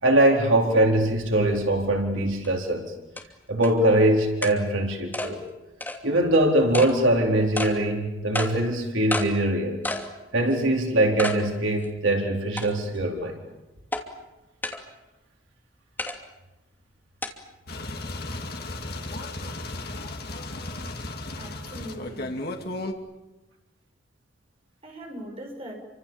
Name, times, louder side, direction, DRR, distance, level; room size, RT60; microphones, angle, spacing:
voice 1, 0.0-2.9 3.5-5.4 6.0-9.8 10.3-13.4, right 1 dB, 90° right, 1 dB, 4.3 m, -22 dB
sound 1, 2.4-2.5 3.2-3.3 3.6-3.7 4.4-4.6 5.1-5.3 5.8-6.0 6.7-6.9 7.6-7.7 8.3-8.5 9.1-9.3 9.8-10.1 10.5-10.6 11.2-11.4 11.8-11.9 12.6-13.0 13.9-14.0 14.6-14.8 16.0-16.2 17.2-17.3, left 2 dB, 10° left, 2.7 m, -29 dB
sound 2, 17.7-22.9, left 2 dB, 50° left, 2.7 m, -34 dB
voice 2, 21.4-22.3 24.8-25.8, equal, 30° right, 1 dB, 6.8 m, -40 dB
29.0 x 25.5 x 7.3 m, 1.1 s
head